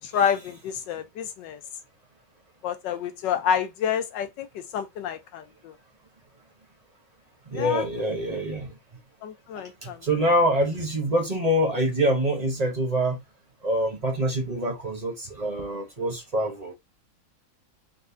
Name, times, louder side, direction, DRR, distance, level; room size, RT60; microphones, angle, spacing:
voice 1, 0.0-1.6 2.6-4.5 4.7-5.7 7.5-7.9 9.2-10.3, left 8 dB, 75° left, 1.2 m, -28 dB
voice 2, 7.5-8.7 9.8-13.2 13.6-16.7, equal, 25° right, 0.9 m, -25 dB
4.3 x 2.5 x 3.4 m
omnidirectional pair, 2.1 m